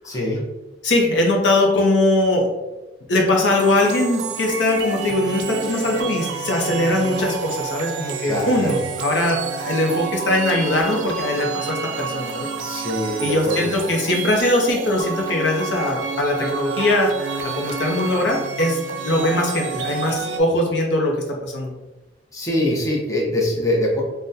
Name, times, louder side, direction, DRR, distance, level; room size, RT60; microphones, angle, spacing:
voice 1, 0.0-0.4 8.2-8.8 12.6-13.7 22.3-24.0, left 1 dB, 15° left, -3 dB, 0.6 m, -23 dB
voice 2, 0.8-2.5 3.1-12.5 13.2-18.8 19.0-21.7, left 1 dB, 65° left, 1 dB, 0.6 m, -21 dB
sound 1, 3.5-20.4, right 6 dB, 70° right, 0.4 m, -30 dB
3.5 x 2.1 x 2.6 m, 1.1 s
head